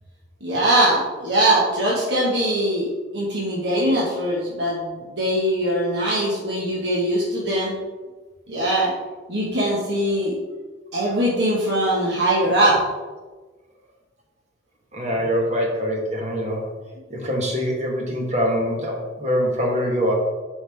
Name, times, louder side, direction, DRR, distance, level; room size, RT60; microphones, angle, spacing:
voice 1, 0.4-7.7 8.5-8.9 9.3-10.3 10.9-12.8, right 1 dB, 65° right, -6 dB, 1.8 m, -21 dB
voice 2, 14.9-16.7 17.1-20.1, equal, 40° right, 0 dB, 1.5 m, -24 dB
8.1 x 5.4 x 3.6 m, 1.3 s
head